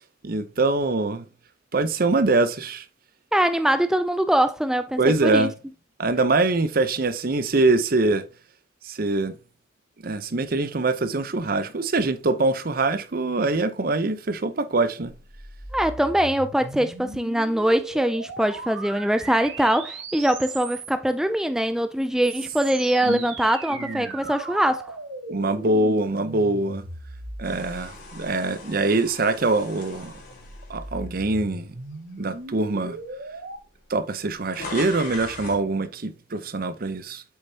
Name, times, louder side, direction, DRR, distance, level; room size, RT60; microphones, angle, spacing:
voice 1, 0.2-1.2 1.7-2.8 5.0-5.5 6.0-8.2 8.8-9.3 10.0-15.1 23.1-23.2 23.8-24.1 25.3-26.8 27.4-30.1 30.7-31.7 32.2-33.0 33.9-37.2, right 2 dB, 50° right, 0.7 m, -23 dB
voice 2, 3.3-5.5 15.7-24.9, right 1 dB, 5° right, 0.3 m, -23 dB
sound 1, 15.0-21.1 22.0-28.6 29.7-33.6, right 3 dB, 80° right, 1.9 m, -38 dB
sound 2, 27.4-31.7 32.2-32.4 33.3-33.4 33.6-35.7, left 3 dB, 50° left, 3.4 m, -40 dB
8.0 x 6.6 x 2.8 m
head